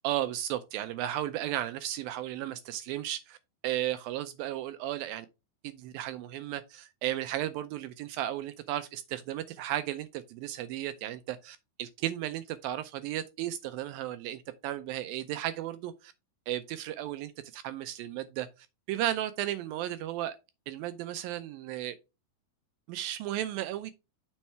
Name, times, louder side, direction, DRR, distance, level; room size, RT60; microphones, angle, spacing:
voice 1, 0.0-3.4 3.6-5.3 5.6-16.1 16.5-18.5 18.9-20.4 20.7-22.0 22.9-23.9, right 13 dB, 80° right, 2.2 m, -34 dB
7.3 x 4.5 x 4.6 m
omnidirectional pair, 4.5 m